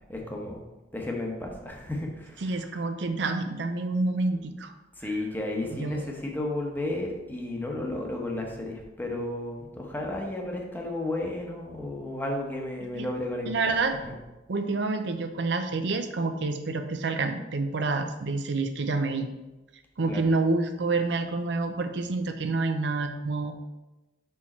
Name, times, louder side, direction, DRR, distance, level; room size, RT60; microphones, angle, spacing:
voice 1, 0.1-0.6 0.9-2.6 5.0-13.7 20.1-20.3, left 1 dB, 10° left, 0 dB, 1.0 m, -33 dB
voice 2, 2.4-4.7 5.0-5.1 5.7-6.1 13.0-13.1 13.5-14.0 14.5-19.3 20.0-23.5, right 3 dB, 70° right, 7 dB, 0.5 m, -28 dB
5.6 x 4.7 x 4.3 m, 1.1 s
head